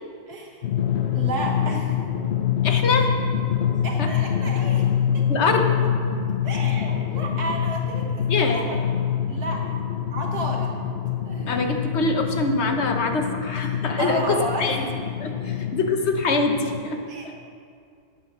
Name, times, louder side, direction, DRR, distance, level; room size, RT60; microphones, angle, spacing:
voice 1, 0.3-0.6 1.1-2.0 2.8-2.9 3.8-4.9 5.1-5.3 6.4-8.9 9.3-9.6 10.1-10.9 11.3-11.5 14.0-14.9 17.1-17.4, right 2 dB, 55° right, 0 dB, 1.8 m, -31 dB
Drum, 0.6-16.8, left 8 dB, 90° left, 0.5 m, -25 dB
voice 2, 2.6-3.1 4.0-4.1 5.3-5.7 8.3-8.7 11.5-14.8 15.2-17.0, left 3 dB, 45° left, 4 dB, 1.1 m, -24 dB
12.0 x 9.4 x 6.1 m, 2.3 s
omnidirectional pair, 2.1 m